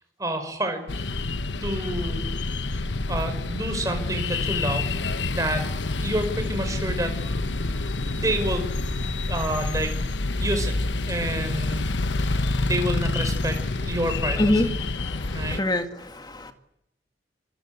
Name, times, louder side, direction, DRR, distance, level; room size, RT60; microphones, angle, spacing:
voice 1, 0.2-1.1 1.6-4.9 5.3-5.7 6.0-7.1 8.1-8.7 9.3-10.0 10.4-10.7 11.1-14.7 15.3-15.6, right 1 dB, 20° right, 5 dB, 5.4 m, -29 dB
sound 1, 0.9-15.6, left 2 dB, 90° left, 1.0 m, -27 dB
voice 2, 14.4-14.7 15.0-16.5, left 1 dB, 25° left, 7 dB, 2.0 m, -25 dB
27.0 x 23.5 x 8.2 m, 0.79 s
head